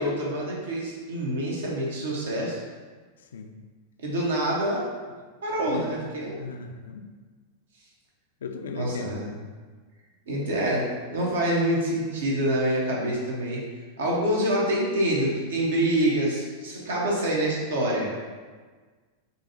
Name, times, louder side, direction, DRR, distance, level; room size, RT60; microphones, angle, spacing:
voice 1, 0.0-2.6 4.0-4.8 5.4-6.4 8.7-9.4 10.3-13.6 14.0-18.1, right 1 dB, 60° right, -3 dB, 0.9 m, -26 dB
voice 2, 5.7-6.1 6.4-7.0 8.4-9.3 10.4-10.6, left 5 dB, 65° left, 6 dB, 0.3 m, -37 dB
3.9 x 2.7 x 2.7 m, 1.4 s
figure-of-eight pair, 90°, 0 cm